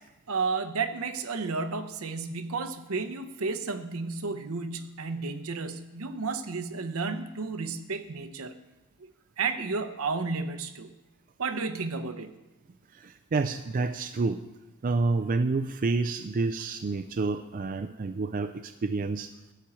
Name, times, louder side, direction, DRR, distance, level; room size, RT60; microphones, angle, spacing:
voice 1, 0.3-8.6 9.4-10.9 11.4-12.3, right 4 dB, 75° right, 10 dB, 0.8 m, -32 dB
voice 2, 13.0-14.4 14.8-19.3, right 3 dB, 40° right, 8 dB, 0.4 m, -29 dB
13.0 x 4.5 x 8.5 m, 1.0 s
head